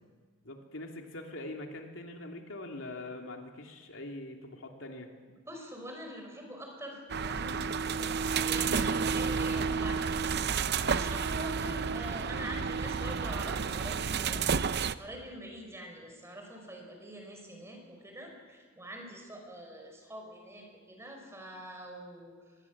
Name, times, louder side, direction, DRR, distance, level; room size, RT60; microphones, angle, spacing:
voice 1, 0.4-5.1, left 2 dB, 85° left, 2 dB, 2.9 m, -43 dB
voice 2, 5.5-7.6 7.9-14.4 14.7-22.6, equal, 15° right, 2 dB, 5.4 m, -45 dB
sound 1, 7.1-14.9, right 5 dB, 60° right, 0.7 m, -31 dB
24.5 x 21.0 x 7.4 m, 1.5 s
head